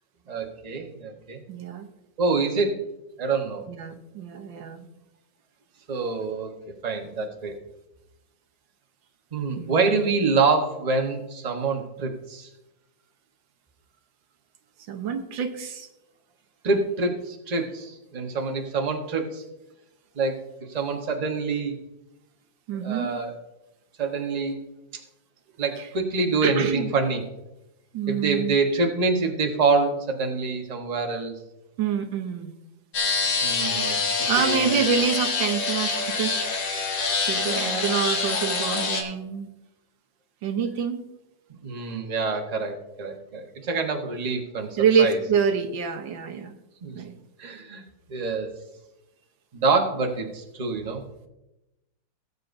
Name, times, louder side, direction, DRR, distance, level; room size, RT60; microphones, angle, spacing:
voice 1, 0.3-1.4 2.2-2.8 3.2-3.6 5.9-6.5 6.8-7.5 9.3-12.5 16.6-19.4 20.1-20.4 20.7-21.8 22.8-23.4 24.0-24.6 25.6-27.2 28.1-31.3 33.4-34.8 37.5-37.9 41.6-45.2 46.8-47.0 47.4-48.5 49.5-51.3, right 4 dB, 25° right, 2 dB, 1.0 m, -26 dB
voice 2, 1.5-1.9 3.7-4.9 9.6-10.0 14.9-15.9 22.7-23.1 25.8-25.9 26.4-26.9 27.9-28.6 31.8-32.5 34.1-36.4 37.3-39.5 40.4-41.0 44.8-46.5 47.0-47.2, right 7 dB, 90° right, 7 dB, 1.7 m, -26 dB
sound 1, 32.9-39.0, left 4 dB, 75° left, 2.1 m, -26 dB
18.5 x 8.0 x 2.6 m, 0.95 s
omnidirectional pair, 2.0 m